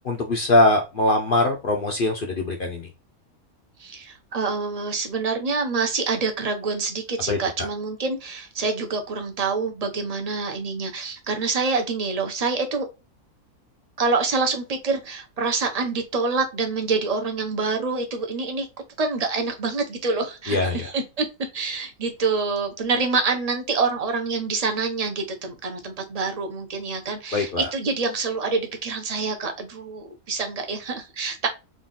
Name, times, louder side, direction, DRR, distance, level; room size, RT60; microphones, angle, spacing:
voice 1, 0.0-2.9 7.3-7.7 20.5-20.9 27.3-27.7, left 2 dB, 55° left, 3 dB, 0.6 m, -22 dB
voice 2, 3.8-12.9 14.0-18.7 19.0-21.3 21.5-31.5, right 4 dB, 40° right, 4 dB, 0.6 m, -26 dB
3.8 x 2.4 x 3.8 m, 0.27 s
omnidirectional pair, 1.6 m